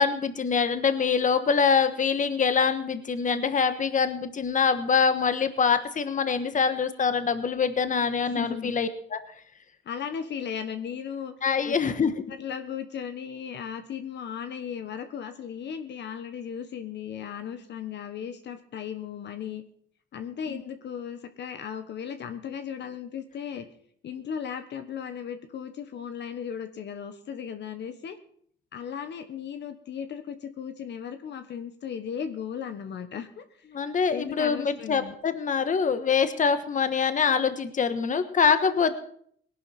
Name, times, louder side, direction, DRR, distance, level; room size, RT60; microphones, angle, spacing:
voice 1, 0.0-9.2 11.4-12.1 20.5-20.6 33.7-38.9, left 6 dB, 40° left, 10 dB, 1.3 m, -24 dB
voice 2, 8.3-8.7 9.8-11.3 11.6-11.8 12.3-19.6 20.1-23.7 24.0-28.2 28.7-33.4 34.1-35.1, left 8 dB, 60° left, 8 dB, 1.2 m, -36 dB
19.0 x 11.0 x 4.4 m, 0.62 s
cardioid pair, 90°, 20 cm